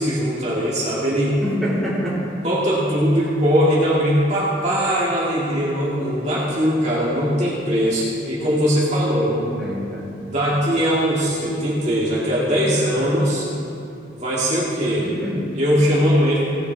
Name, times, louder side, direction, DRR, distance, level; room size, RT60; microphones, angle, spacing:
voice 1, 0.0-1.4 2.4-9.4 10.2-13.5 14.1-15.1 15.5-16.6, equal, 35° right, -8 dB, 2.3 m, -20 dB
voice 2, 1.4-2.2 9.3-10.1 15.0-15.4, equal, ahead, -10 dB, 3.4 m, -26 dB
18.5 x 9.3 x 3.5 m, 2.6 s
head